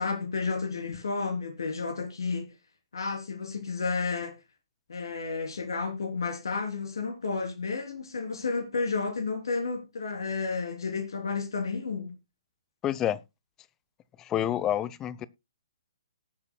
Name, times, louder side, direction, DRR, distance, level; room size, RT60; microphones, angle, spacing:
voice 1, 0.0-2.5 2.9-4.3 4.9-12.1, left 4 dB, 65° left, 3.3 m, -31 dB
voice 2, 12.8-13.2 14.2-15.3, left 11 dB, 20° left, 0.6 m, -28 dB
18.5 x 8.1 x 2.2 m
figure-of-eight pair, 130°, 2 cm